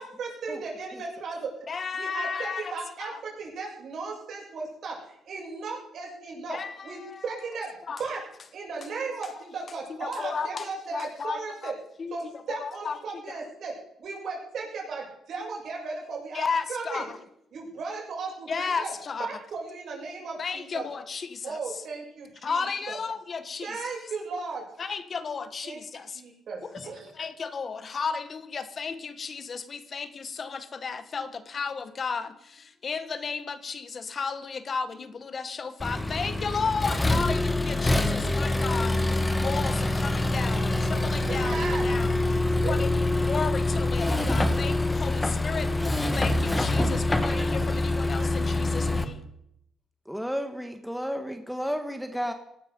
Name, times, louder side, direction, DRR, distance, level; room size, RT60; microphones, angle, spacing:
voice 1, 0.0-1.5 1.9-6.6 6.8-7.7 8.0-8.2 8.5-11.7 12.1-17.0 17.5-18.9 19.3-20.9 21.4-23.0 23.6-24.7 25.6-25.8 26.1-27.1 41.2-41.9 42.6-42.8 44.0-44.3, right 4 dB, 65° right, -1 dB, 7.0 m, -36 dB
voice 2, 1.7-2.7 3.0-3.2 6.4-7.2 7.9-8.0 9.7-11.7 12.0-13.0 13.3-13.4 16.3-17.2 18.5-19.3 20.4-21.8 22.4-23.8 24.8-26.2 26.6-49.2, left 5 dB, 45° left, 12 dB, 1.3 m, -34 dB
Accelerating revving vroom, 35.8-49.0, left 2 dB, 15° left, 1.7 m, -25 dB
voice 3, 50.0-52.3, equal, ahead, 6 dB, 1.4 m, -32 dB
18.0 x 12.5 x 5.2 m, 0.77 s
cardioid pair, 90°, 0 cm